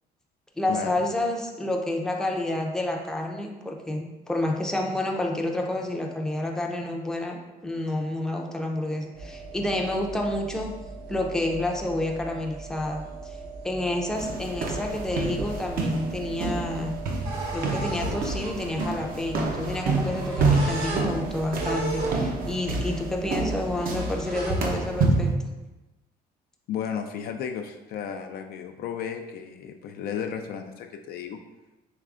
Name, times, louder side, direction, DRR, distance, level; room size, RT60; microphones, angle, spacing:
voice 1, 0.6-10.7 11.1-13.4 13.6-17.0 17.5-25.3, left 1 dB, 5° left, 0 dB, 0.5 m, -29 dB
sound 1, 9.2-25.0, right 2 dB, 80° right, 1.3 m, -36 dB
sound 2, 14.1-25.3, right 3 dB, 60° right, 0.6 m, -28 dB
voice 2, 26.7-31.4, left 8 dB, 65° left, 5 dB, 0.4 m, -33 dB
4.8 x 3.2 x 2.4 m, 1.1 s
cardioid pair, 110°, 17 cm